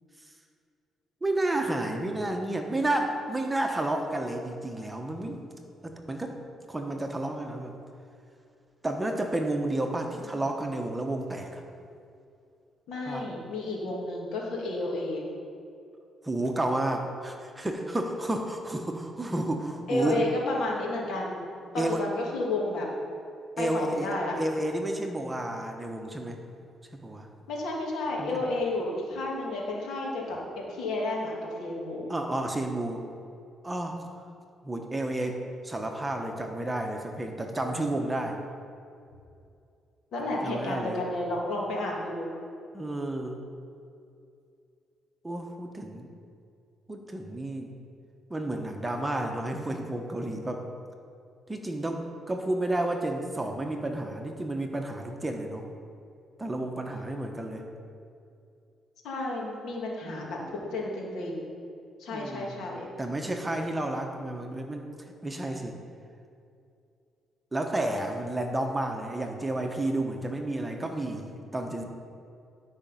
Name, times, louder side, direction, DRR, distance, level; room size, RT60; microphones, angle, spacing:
voice 1, 1.2-5.4 5.8-6.3 6.7-7.8 8.8-11.6 13.1-13.2 16.2-20.2 21.8-22.0 23.6-24.1 24.4-26.4 26.9-27.3 28.2-28.4 32.1-33.0 33.6-34.0 34.6-38.4 40.4-41.0 42.7-43.4 45.2-46.1 46.9-47.7 48.3-50.6 51.5-55.6 56.4-57.6 60.0-60.5 62.1-62.6 63.0-64.9 65.2-65.7 67.5-71.8, right 1 dB, 15° right, 3 dB, 1.0 m, -31 dB
voice 2, 9.9-10.4 12.9-15.2 19.9-21.4 21.7-22.9 23.6-24.4 27.5-32.1 40.1-42.3 59.0-61.5 62.0-62.9, left 2 dB, 75° left, -2 dB, 2.2 m, -32 dB
11.5 x 5.2 x 5.6 m, 2.5 s
cardioid pair, 90°, 0 cm